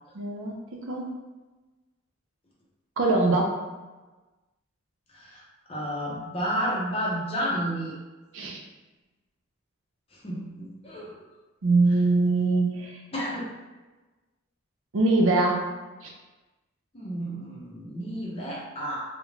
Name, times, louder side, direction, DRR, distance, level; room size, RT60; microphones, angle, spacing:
voice 1, 0.1-1.1 3.0-3.7 8.3-8.6 11.6-13.0 14.9-16.1, right 2 dB, 65° right, 0 dB, 0.5 m, -23 dB
voice 2, 5.7-7.9 10.2-11.1 13.1-13.5 16.9-19.0, equal, 25° left, -4 dB, 0.5 m, -31 dB
2.4 x 2.1 x 3.1 m, 1.2 s
head